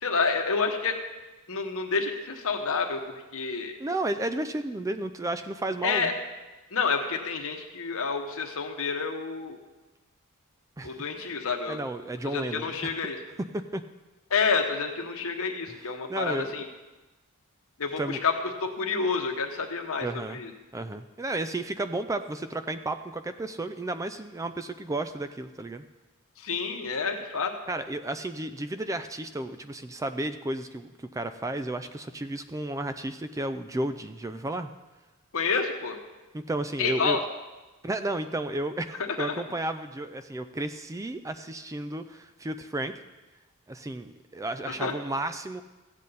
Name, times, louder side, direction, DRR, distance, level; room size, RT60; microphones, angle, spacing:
voice 1, 0.0-1.0 1.5-3.0 3.3-3.7 5.8-6.1 6.7-9.6 10.8-11.8 12.2-13.2 14.3-16.7 17.8-18.3 18.6-20.1 20.3-20.5 26.4-27.5 35.3-36.0 36.8-37.2 39.2-39.3 44.7-44.9, left 5 dB, 65° left, 4 dB, 1.3 m, -28 dB
voice 2, 3.8-6.1 10.8-11.0 11.7-13.0 13.5-13.8 15.7-15.8 16.1-16.6 18.0-18.2 20.0-20.4 20.7-25.8 27.7-34.7 36.3-37.2 37.8-42.9 43.7-45.6, right 2 dB, 15° right, 10 dB, 0.4 m, -33 dB
15.0 x 8.5 x 4.1 m, 1.2 s
head